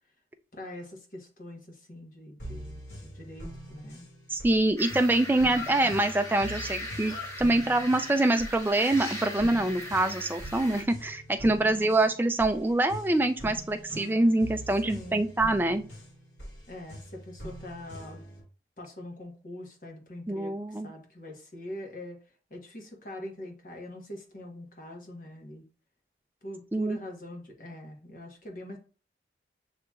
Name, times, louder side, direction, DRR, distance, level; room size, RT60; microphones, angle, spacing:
voice 1, 0.5-4.1 5.8-6.0 9.4-9.6 11.6-11.9 14.8-15.2 16.7-18.2 18.8-22.2 22.5-25.6 26.4-28.8, left 1 dB, 50° left, 2 dB, 1.1 m, -43 dB
sound 1, 2.4-18.4, right 1 dB, 80° left, 1.9 m, -44 dB
voice 2, 4.3-15.8 20.3-20.9 26.7-27.0, right 2 dB, 10° right, 7 dB, 0.3 m, -25 dB
sound 2, 4.8-10.8, left 1 dB, 15° left, 1.1 m, -39 dB
7.4 x 2.9 x 2.3 m, 0.37 s
head